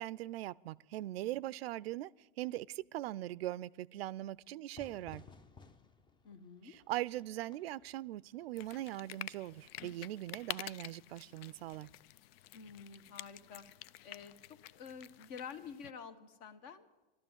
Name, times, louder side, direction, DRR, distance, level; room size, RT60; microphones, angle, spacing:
voice 1, 0.0-5.2 6.6-11.9, right 15 dB, 80° right, 0.5 m, -41 dB
Fire / Fireworks, 4.7-10.3, left 4 dB, 15° left, 0.6 m, -60 dB
voice 2, 6.2-6.8 12.5-13.7 14.0-16.9, left 6 dB, 50° left, 1.3 m, -49 dB
sound 1, 8.6-15.9, left 14 dB, 75° left, 0.4 m, -49 dB
12.5 x 12.0 x 7.3 m
hypercardioid pair, 105°, 30 cm